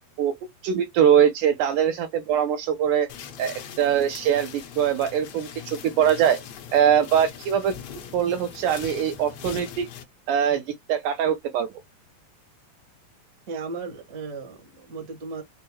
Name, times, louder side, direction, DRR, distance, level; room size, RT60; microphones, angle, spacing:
voice 1, 0.6-3.1 3.4-6.4 6.7-7.7 8.1-9.9 10.3-10.6 10.9-11.7, right 9 dB, 80° right, 2.1 m, -22 dB
sound 1, 3.1-10.0, left 8 dB, 70° left, 1.7 m, -41 dB
voice 2, 13.5-15.4, right 4 dB, 50° right, 1.1 m, -35 dB
5.5 x 2.0 x 2.9 m
omnidirectional pair, 4.0 m